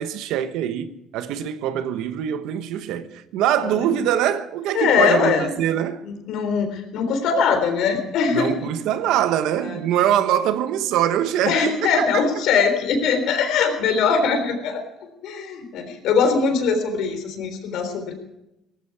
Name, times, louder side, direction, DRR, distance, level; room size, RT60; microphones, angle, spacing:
voice 1, 0.0-6.0 8.3-12.2, right 10 dB, 75° right, 1.2 m, -23 dB
voice 2, 3.6-3.9 4.7-5.6 6.0-8.5 9.6-9.8 11.5-14.8 15.2-18.1, left 5 dB, 70° left, 3.7 m, -21 dB
18.0 x 15.0 x 4.8 m
cardioid pair, 120°, 0 cm